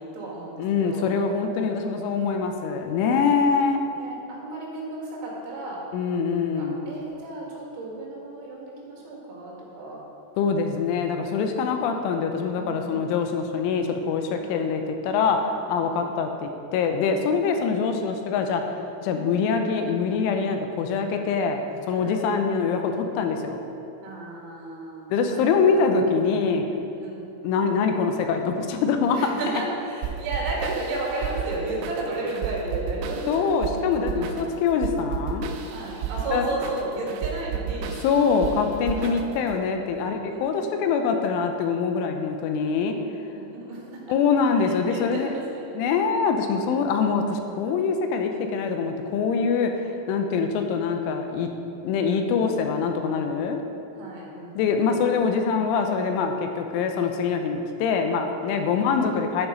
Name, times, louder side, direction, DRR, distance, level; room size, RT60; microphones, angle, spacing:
voice 1, 0.0-1.1 3.4-5.8 6.4-10.0 12.6-13.1 14.4-14.6 15.8-16.1 17.4-17.5 22.0-22.2 24.0-25.8 26.7-27.3 29.1-33.6 34.1-34.5 35.7-38.0 38.9-39.2 40.0-40.8 43.3-44.0 44.6-45.6 50.1-50.5 54.0-55.0 58.5-58.7, right 2 dB, 65° right, -4 dB, 3.9 m, -34 dB
voice 2, 0.6-3.8 5.9-6.8 10.4-18.6 19.0-21.6 21.9-23.6 25.1-26.6 27.4-29.3 33.3-35.5 36.3-36.4 38.0-43.0 44.1-45.3 45.7-49.7 50.1-51.5 51.8-53.6 54.6-59.5, left 5 dB, 85° left, 5 dB, 3.2 m, -24 dB
sound 1, 30.0-39.6, right 8 dB, 90° right, 3.3 m, -33 dB
11.0 x 7.2 x 5.1 m, 2.8 s
omnidirectional pair, 5.6 m